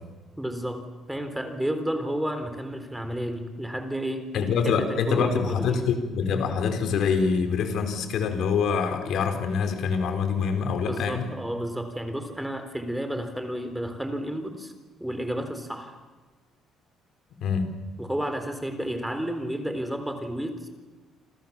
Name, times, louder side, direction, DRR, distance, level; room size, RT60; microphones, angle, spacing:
voice 1, 0.4-5.8 10.9-14.7 15.0-16.0 18.0-20.7, equal, 5° right, 8 dB, 3.8 m, -31 dB
voice 2, 4.3-11.3 17.4-17.7, left 6 dB, 60° left, 6 dB, 4.5 m, -25 dB
29.0 x 26.5 x 7.3 m, 1.3 s
cardioid pair, 150°, 0 cm